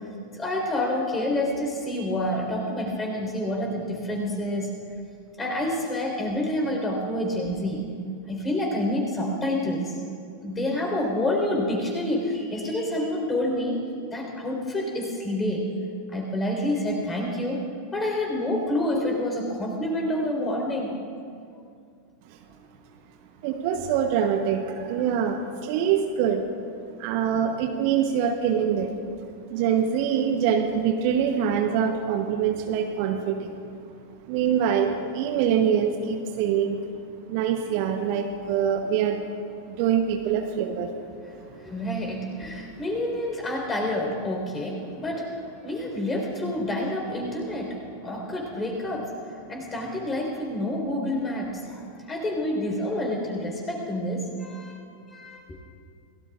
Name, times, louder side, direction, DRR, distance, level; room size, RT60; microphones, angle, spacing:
voice 1, 0.3-4.7 5.4-7.9 8.3-9.9 10.4-13.8 14.1-15.7 16.1-17.6 17.9-20.9 41.6-49.2 49.5-54.8 55.1-55.4, left 1 dB, 15° left, 0 dB, 4.3 m, -28 dB
voice 2, 23.4-26.4 27.0-29.0 29.5-33.5 34.3-36.8 37.3-39.2 39.7-40.9, right 8 dB, 45° right, 5 dB, 1.0 m, -24 dB
28.0 x 18.0 x 2.5 m, 2.4 s
figure-of-eight pair, 90°, 0 cm